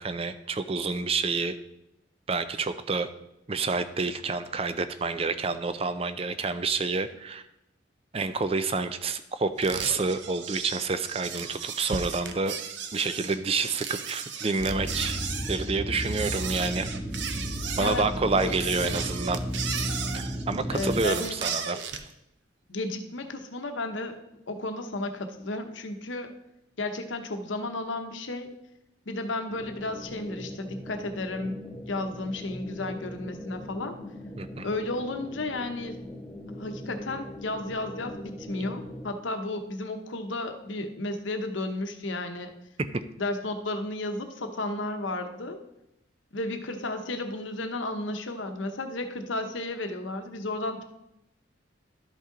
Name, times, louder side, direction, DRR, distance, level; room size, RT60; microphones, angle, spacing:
voice 1, 0.0-1.6 2.3-3.1 3.5-7.4 8.1-12.5 12.9-16.9 17.8-19.4 20.1-21.8 34.4-34.7 42.8-43.0, right 4 dB, 30° right, 11 dB, 0.4 m, -28 dB
sound 1, 9.6-22.1, right 7 dB, 65° right, 0.7 m, -36 dB
sound 2, 14.6-21.0, equal, 5° right, 1.5 m, -33 dB
voice 2, 18.3-19.0 20.7-21.4 22.7-24.2 24.5-26.3 26.8-28.5 29.1-33.9 34.6-36.0 36.6-42.5 43.2-45.6 46.3-50.8, left 2 dB, 80° left, 6 dB, 0.9 m, -33 dB
sound 3, 29.5-39.1, left 1 dB, 10° left, 1.9 m, -41 dB
12.0 x 5.4 x 3.8 m, 0.86 s
head